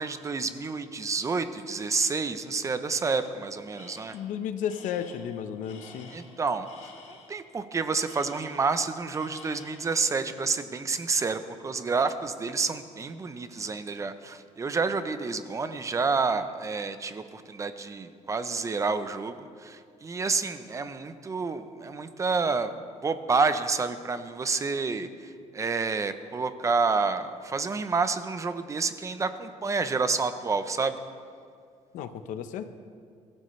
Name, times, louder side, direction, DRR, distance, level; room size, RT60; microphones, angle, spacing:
voice 1, 0.0-4.2 6.1-6.7 7.3-22.7 23.0-31.0, right 4 dB, 25° right, 10 dB, 0.7 m, -29 dB
Tools, 3.7-4.3 4.6-7.4 8.0-8.9 9.1-10.0, left 4 dB, 65° left, 2.9 m, -50 dB
voice 2, 4.1-6.1 31.9-32.7, left 8 dB, 85° left, 9 dB, 0.9 m, -33 dB
23.5 x 14.0 x 3.2 m, 2.2 s
cardioid pair, 145°, 13 cm